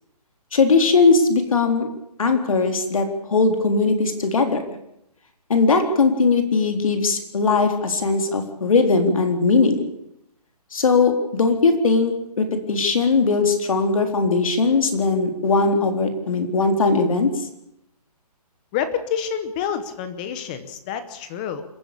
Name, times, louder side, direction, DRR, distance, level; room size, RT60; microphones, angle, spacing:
voice 1, 0.5-1.9 2.2-4.6 5.5-9.8 10.7-17.3, left 4 dB, 60° left, 6 dB, 3.8 m, -19 dB
voice 2, 18.7-21.6, left 8 dB, 15° left, 11 dB, 0.9 m, -28 dB
28.0 x 11.0 x 8.5 m, 0.84 s
hypercardioid pair, 175°, 20 cm